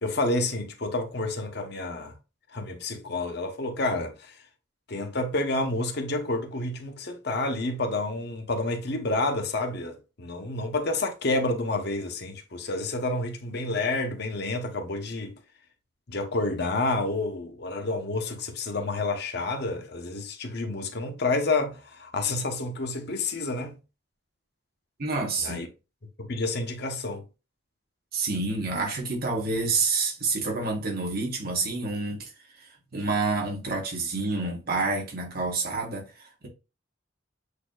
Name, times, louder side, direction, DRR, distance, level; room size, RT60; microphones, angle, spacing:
voice 1, 0.0-2.1 2.5-4.4 4.9-15.3 16.1-23.8 25.4-25.7 26.2-27.2, left 2 dB, 55° left, 0.9 m, -29 dB
voice 2, 25.0-25.7 28.1-32.3 32.6-36.5, right 3 dB, 50° right, 1.4 m, -28 dB
8.2 x 2.8 x 2.3 m
head